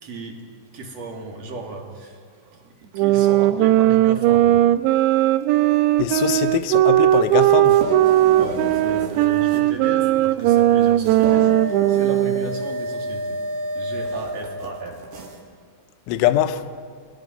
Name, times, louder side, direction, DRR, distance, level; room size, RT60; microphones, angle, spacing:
voice 1, 0.0-0.4 0.7-2.2 2.6-4.7 8.4-13.4 13.7-15.0, right 3 dB, 40° right, 2.9 m, -35 dB
sound 1, 3.0-12.6, right 13 dB, 85° right, 2.5 m, -18 dB
voice 2, 6.0-7.8 16.1-16.6, left 12 dB, 80° left, 3.2 m, -22 dB
sound 2, 7.1-15.4, right 1 dB, 60° right, 3.9 m, -31 dB
29.5 x 21.5 x 5.3 m
omnidirectional pair, 5.7 m